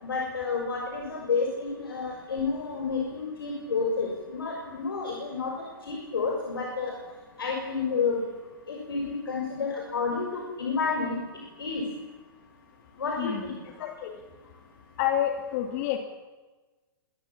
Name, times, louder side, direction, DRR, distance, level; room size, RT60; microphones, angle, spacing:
voice 1, 0.0-5.5 5.9-7.0 7.4-8.2 8.7-11.2 11.6-11.8 13.0-13.6, left 4 dB, 85° left, 0 dB, 6.2 m, -30 dB
voice 2, 13.8-14.1 15.0-16.0, left 11 dB, 45° left, 6 dB, 2.7 m, -28 dB
25.5 x 20.0 x 7.3 m, 1.2 s
hypercardioid pair, 125°, 12 cm